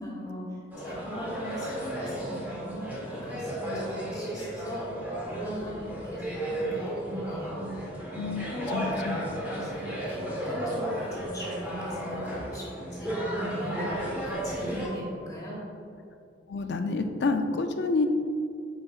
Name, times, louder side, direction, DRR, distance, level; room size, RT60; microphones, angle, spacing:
voice 1, 0.0-8.0 8.5-15.6, equal, 20° left, -5 dB, 1.2 m, -40 dB
sound 1, 0.7-14.9, right 1 dB, 10° right, 1.3 m, -34 dB
voice 2, 8.7-9.2 16.5-18.1, left 3 dB, 65° left, 6 dB, 0.4 m, -28 dB
7.7 x 5.0 x 2.4 m, 2.6 s
head